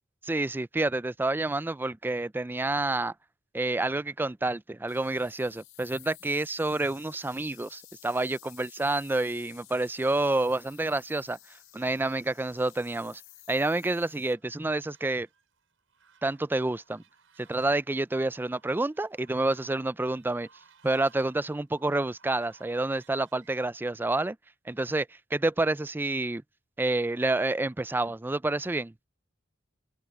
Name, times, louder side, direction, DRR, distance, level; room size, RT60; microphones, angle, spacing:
voice 1, 0.2-3.1 3.5-11.4 11.7-13.2 13.5-15.3 16.2-17.0 17.4-20.5 20.8-24.4 24.7-26.4 26.8-28.9, right 2 dB, 10° right, 0.3 m, -28 dB
sound 1, 4.9-14.3, left 16 dB, 90° left, 5.9 m, -54 dB
Fowl, 9.7-23.7, right 5 dB, 70° right, 7.6 m, -63 dB
head